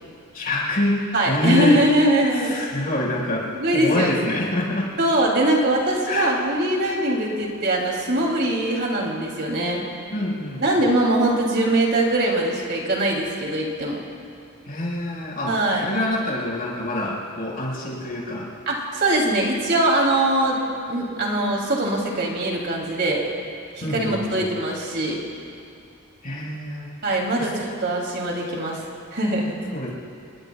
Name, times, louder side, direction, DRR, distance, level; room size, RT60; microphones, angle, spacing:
voice 1, 0.3-1.0 1.3-1.8 2.4-3.4 3.7-4.9 6.1-6.3 10.1-10.8 14.7-15.5 15.8-18.5 23.8-24.5 26.2-26.9 27.4-27.5 29.7-29.9, left 1 dB, 45° left, -4 dB, 5.3 m, -26 dB
voice 2, 1.1-2.6 3.5-4.4 5.0-9.8 10.6-14.0 15.4-15.9 18.7-20.6 20.9-23.2 23.8-25.2 27.0-28.8 29.1-29.6, right 1 dB, 50° right, -1 dB, 3.0 m, -22 dB
28.5 x 21.5 x 2.4 m, 2.6 s
head